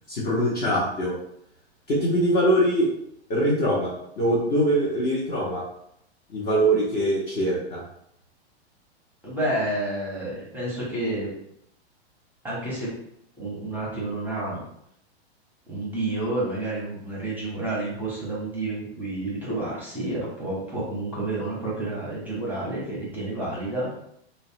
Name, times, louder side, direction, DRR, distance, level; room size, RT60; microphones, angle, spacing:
voice 1, 0.1-1.1 1.9-2.9 3.3-5.6 6.3-7.8, right 1 dB, 25° left, -5 dB, 0.6 m, -23 dB
voice 2, 9.2-11.3 12.4-12.9 13.4-14.6 15.7-23.9, right 2 dB, 5° right, -6 dB, 0.8 m, -30 dB
2.9 x 2.0 x 2.8 m, 0.73 s
hypercardioid pair, 140°, 33 cm